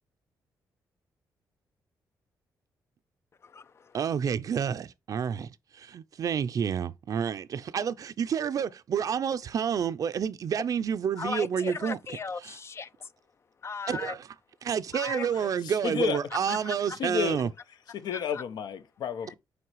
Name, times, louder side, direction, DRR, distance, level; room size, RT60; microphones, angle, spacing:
voice 1, 3.4-4.0 11.2-13.1 13.6-14.2 14.9-15.3 16.5-17.0 18.1-18.4, left 4 dB, 40° left, 0.4 m, -37 dB
voice 2, 3.9-12.0 12.4-12.5 13.9-14.2 14.6-17.5, right 7 dB, 55° right, 0.5 m, -29 dB
voice 3, 15.3-16.6 16.9-17.4 17.9-19.4, left 7 dB, 80° left, 0.9 m, -32 dB
9.3 x 3.3 x 3.0 m
cardioid pair, 110°, 7 cm